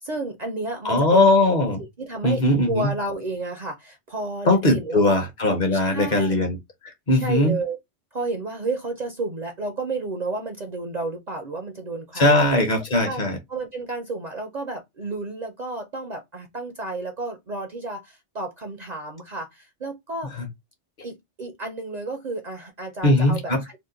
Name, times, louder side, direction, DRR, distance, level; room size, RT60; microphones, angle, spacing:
voice 1, 0.0-1.3 2.0-2.4 2.7-5.2 5.7-6.5 7.1-7.8 8.1-12.4 13.0-13.2 13.5-20.3 21.0-23.8, right 3 dB, 50° right, 0.5 m, -31 dB
voice 2, 0.8-1.8 2.2-2.9 4.4-6.6 6.8-7.6 12.1-13.4 20.3-20.5 23.0-23.6, left 2 dB, 45° left, 0.8 m, -20 dB
2.9 x 2.1 x 3.7 m
omnidirectional pair, 1.2 m